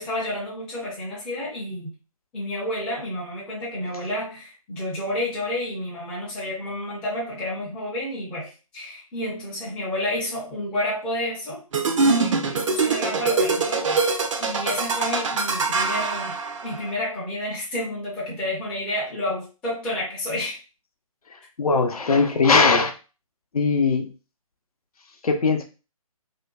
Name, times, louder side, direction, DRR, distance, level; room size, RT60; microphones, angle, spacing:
voice 1, 0.0-1.9 2.3-11.6 12.0-16.4 16.6-20.6, left 1 dB, 5° left, -7 dB, 0.4 m, -30 dB
sound 1, 11.7-16.9, right 4 dB, 60° right, 0.4 m, -23 dB
voice 2, 21.6-22.9 23.5-24.1 25.2-25.6, left 4 dB, 80° left, 5 dB, 0.6 m, -19 dB
2.5 x 2.2 x 2.3 m, 0.32 s
figure-of-eight pair, 150°, 19 cm